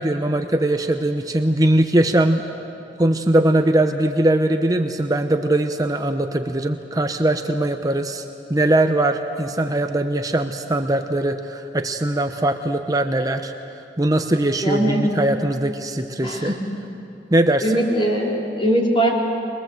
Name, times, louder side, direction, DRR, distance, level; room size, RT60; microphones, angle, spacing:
voice 1, 0.0-2.4 3.0-8.2 8.5-13.5 14.0-16.5 17.3-17.8, right 1 dB, 20° right, 6 dB, 0.8 m, -20 dB
voice 2, 14.6-15.0 16.2-16.6 17.6-19.1, right 1 dB, 30° left, -2 dB, 3.4 m, -21 dB
22.5 x 22.0 x 7.7 m, 2.7 s
head